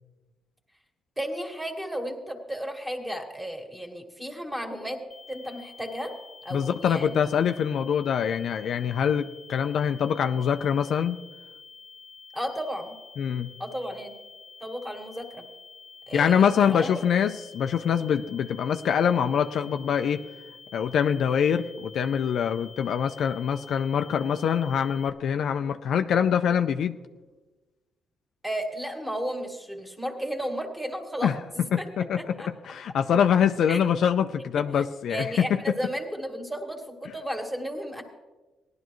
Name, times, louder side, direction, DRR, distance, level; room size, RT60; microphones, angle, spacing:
voice 1, 1.2-5.0 5.3-6.1 6.4-7.2 12.3-12.9 13.6-14.1 14.6-15.4 16.1-16.9 28.4-31.9 32.2-32.5 33.7-33.8 35.1-38.0, equal, 5° right, 2 dB, 1.9 m, -33 dB
sound 1, 5.1-25.1, left 5 dB, 30° left, 0.6 m, -49 dB
voice 2, 6.5-11.2 13.2-13.5 16.1-20.2 20.7-27.0 31.2-31.4 31.7-35.6, left 8 dB, 65° left, 8 dB, 0.4 m, -24 dB
17.5 x 11.5 x 3.1 m, 1.2 s
cardioid pair, 90°, 0 cm